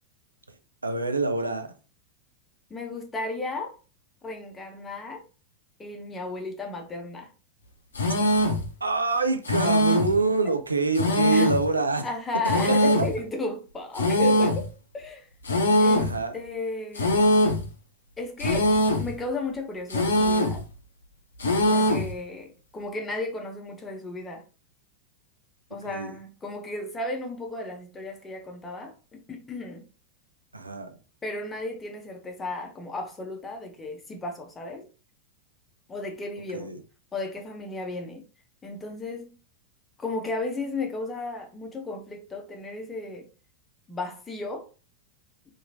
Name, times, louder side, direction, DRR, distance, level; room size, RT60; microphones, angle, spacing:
voice 1, 0.8-1.7 8.8-12.1 12.7-13.1 16.0-16.4 25.8-26.1 30.5-31.0 36.5-36.8, right 3 dB, 80° right, 0.4 m, -26 dB
voice 2, 2.7-3.8 4.2-5.2 5.8-7.3 11.3-11.5 12.0-14.7 14.9-15.3 15.8-17.3 18.2-18.7 19.0-20.6 21.7-24.4 25.7-29.9 31.2-34.9 35.9-36.7 37.1-38.2 38.6-39.3 40.0-43.3 43.9-44.7, left 2 dB, 15° left, 0.7 m, -34 dB
sound 1, 8.0-8.7 9.5-10.2 11.0-11.7 12.5-13.2 14.0-14.7 15.5-16.2 17.0-17.7 18.4-19.1 19.9-20.6 21.4-22.1, equal, 70° left, 0.6 m, -22 dB
2.9 x 2.5 x 2.6 m
figure-of-eight pair, 90°, 0 cm